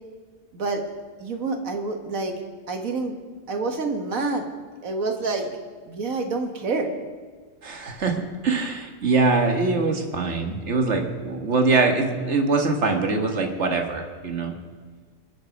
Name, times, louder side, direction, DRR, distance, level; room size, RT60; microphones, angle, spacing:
voice 1, 1.2-2.3 2.7-3.1 3.5-4.5 4.8-5.5 5.9-6.9, right 3 dB, 85° right, 4 dB, 1.9 m, -27 dB
voice 2, 7.6-14.6, right 3 dB, 60° right, 4 dB, 1.8 m, -23 dB
23.5 x 8.3 x 5.2 m, 1.5 s
omnidirectional pair, 1.4 m